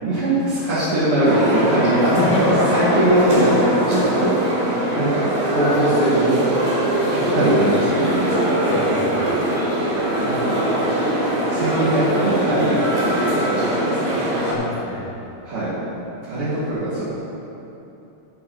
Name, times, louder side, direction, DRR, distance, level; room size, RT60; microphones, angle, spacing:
voice 1, 0.0-2.1 2.4-4.6 5.0-5.2 5.5-6.5 7.1-7.6 8.0-8.5 10.2-10.6 11.5-12.8 13.2-14.2 15.4-15.7 16.3-17.0, right 1 dB, 40° right, -14 dB, 2.7 m, -21 dB
sound 1, 1.2-14.5, right 1 dB, 60° right, 3.3 m, -22 dB
voice 2, 2.1-2.6 3.4-3.5 7.1-7.8 8.4-9.4 14.5-15.1, left 2 dB, 55° left, -5 dB, 2.8 m, -26 dB
15.5 x 8.5 x 3.0 m, 2.9 s
omnidirectional pair, 4.5 m